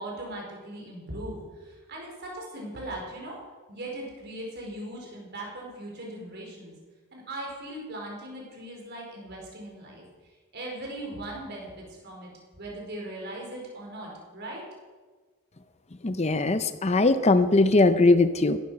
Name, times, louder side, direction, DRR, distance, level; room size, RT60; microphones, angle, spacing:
voice 1, 0.0-3.4 3.7-6.7 7.1-10.0 10.5-11.7 12.0-12.3 12.6-14.6, right 1 dB, 50° right, -1 dB, 5.0 m, -39 dB
voice 2, 16.0-18.6, left 2 dB, 30° left, 11 dB, 0.7 m, -20 dB
17.0 x 13.5 x 5.8 m, 1.4 s
head